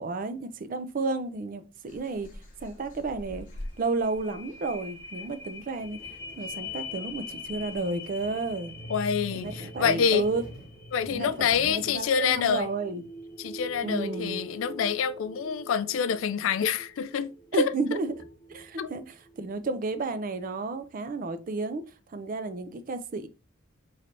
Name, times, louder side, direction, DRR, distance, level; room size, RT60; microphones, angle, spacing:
voice 1, 0.0-2.3 2.6-3.5 3.8-6.0 6.4-8.8 9.3-10.4 11.1-13.0 13.8-14.4 17.5-18.1 18.5-21.8 22.1-23.3, right 3 dB, 45° right, 0.4 m, -32 dB
sound 1, 1.8-8.4, left 1 dB, 40° left, 0.9 m, -47 dB
sound 2, 3.7-19.7 20.2-20.3, left 2 dB, 10° left, 0.6 m, -43 dB
sound 3, 5.8-12.6, right 1 dB, 70° right, 1.6 m, -51 dB
voice 2, 8.9-10.2 10.9-12.7 13.4-17.7 18.8-18.9, left 7 dB, 75° left, 0.3 m, -27 dB
4.3 x 3.2 x 2.5 m
head